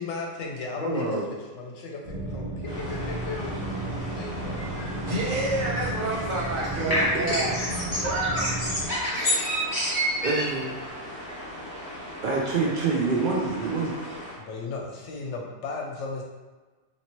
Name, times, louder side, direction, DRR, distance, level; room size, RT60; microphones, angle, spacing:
voice 1, 0.0-3.5 4.0-4.6 7.0-7.7 10.9-11.0 14.4-16.2, left 4 dB, 70° left, 0 dB, 0.9 m, -36 dB
voice 2, 0.8-1.2 4.9-7.6 8.0-8.5, right 2 dB, 90° right, -6 dB, 1.3 m, -28 dB
sound 1, 2.0-8.9, right 2 dB, 40° right, 1.2 m, -33 dB
sound 2, 2.7-14.4, equal, 30° left, 1.3 m, -31 dB
voice 3, 9.1-9.5 10.2-10.7 12.2-13.9, right 4 dB, 60° right, -3 dB, 0.5 m, -26 dB
2.9 x 2.9 x 2.9 m, 1.3 s
omnidirectional pair, 1.3 m